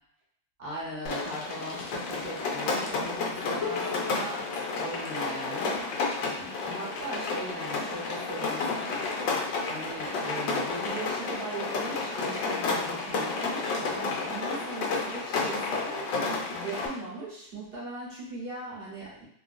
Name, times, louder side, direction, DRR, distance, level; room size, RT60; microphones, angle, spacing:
voice 1, 0.6-4.5 4.7-5.9 6.4-9.1 9.7-16.1 16.5-19.2, right 2 dB, 40° right, -7 dB, 0.9 m, -39 dB
Rain, 1.1-16.9, left 3 dB, 85° left, 1.3 m, -31 dB
Harp, 3.6-9.4 10.5-10.6, left 6 dB, 55° left, 1.1 m, -43 dB
3.2 x 2.3 x 2.5 m, 0.71 s
omnidirectional pair, 2.0 m